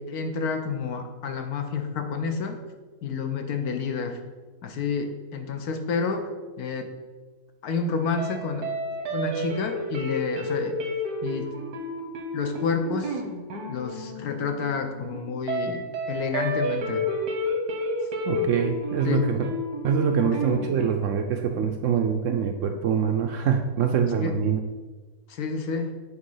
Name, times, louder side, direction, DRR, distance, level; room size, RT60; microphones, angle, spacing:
voice 1, 0.0-2.6 3.0-4.2 4.6-6.3 6.6-6.9 7.6-8.7 9.1-10.8 11.2-11.5 12.3-13.2 13.7-15.8 16.1-17.0 19.1-19.3 24.2-24.3 25.3-25.9, left 5 dB, 75° left, 6 dB, 1.3 m, -29 dB
sound 1, 8.2-8.4 8.6-20.9, equal, 85° right, 1.6 m, -30 dB
voice 2, 18.2-19.5 19.8-24.6, right 7 dB, 70° right, 5 dB, 0.8 m, -24 dB
8.3 x 3.2 x 5.4 m, 1.3 s
omnidirectional pair, 1.7 m